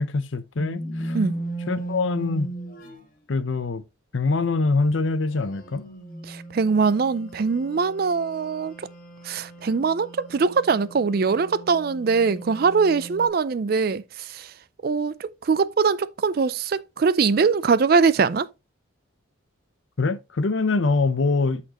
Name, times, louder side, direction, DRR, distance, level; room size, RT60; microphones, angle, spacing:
voice 1, 0.0-1.2 1.7-2.5 3.3-3.8 4.1-5.8 20.0-21.6, left 3 dB, 70° left, 0.7 m, -24 dB
sound 1, 0.6-3.0 5.4-13.3, right 2 dB, 45° left, 1.5 m, -37 dB
voice 2, 6.3-8.9 9.2-14.5 14.8-18.5, right 5 dB, 50° right, 0.4 m, -22 dB
12.5 x 4.3 x 2.9 m
head